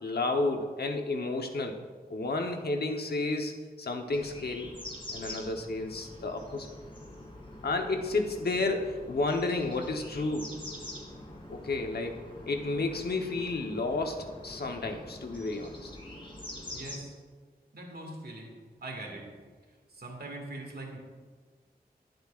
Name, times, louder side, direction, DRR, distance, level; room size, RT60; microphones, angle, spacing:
voice 1, 0.0-1.8 2.1-4.7 5.1-6.7 7.6-10.5 11.5-12.2 12.5-15.9, left 3 dB, 75° left, 3 dB, 1.0 m, -31 dB
sound 1, 4.1-17.0, left 1 dB, 30° left, 2.4 m, -45 dB
voice 2, 16.7-17.1 17.7-18.5 18.8-19.3 19.9-21.0, right 2 dB, 75° right, 0 dB, 2.0 m, -41 dB
21.5 x 7.8 x 2.5 m, 1.5 s
wide cardioid pair, 75°, 16 cm